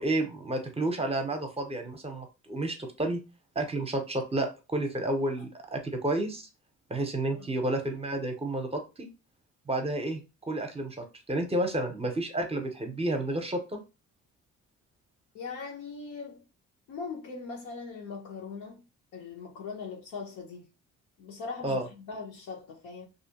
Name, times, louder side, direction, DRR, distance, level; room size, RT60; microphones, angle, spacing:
voice 1, 0.0-3.2 3.6-6.5 6.9-9.1 9.7-10.2 10.5-13.8 21.6-21.8, right 1 dB, 20° right, 0.6 m, -31 dB
voice 2, 15.3-16.4 16.9-18.8 19.1-20.7 21.2-23.1, left 4 dB, 90° left, 0.9 m, -40 dB
2.5 x 2.1 x 2.8 m
cardioid pair, 90°, 30 cm